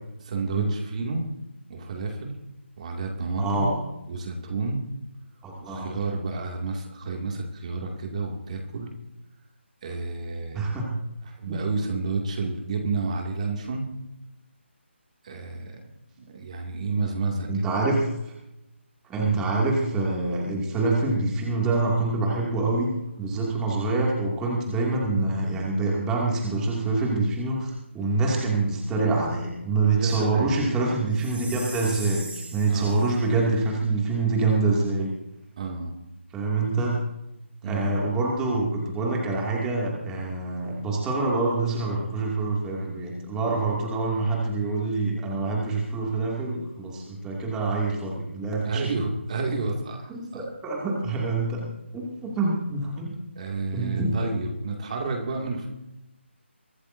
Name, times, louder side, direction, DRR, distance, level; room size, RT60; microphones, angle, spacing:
voice 1, 0.3-1.2 1.7-2.3 2.8-3.7 4.1-4.8 5.6-8.9 9.8-10.8 11.2-13.9 15.2-15.8 16.3-17.6 19.2-19.4 29.9-30.6 32.7-33.0 35.6-35.9 37.6-37.9 48.6-50.5 53.4-55.7, right 3 dB, 35° right, 1 dB, 2.5 m, -30 dB
voice 2, 3.4-3.8 5.4-6.0 10.5-10.9 11.4-11.6 17.5-18.3 19.1-22.9 23.2-35.1 36.3-37.0 37.6-48.8 50.1-51.7 51.9-53.1 53.7-54.1, right 3 dB, 10° right, -3 dB, 2.5 m, -26 dB
Chime, 31.2-33.2, right 2 dB, 60° right, 6.8 m, -39 dB
23.5 x 13.0 x 2.7 m, 0.91 s
figure-of-eight pair, 160°, 7 cm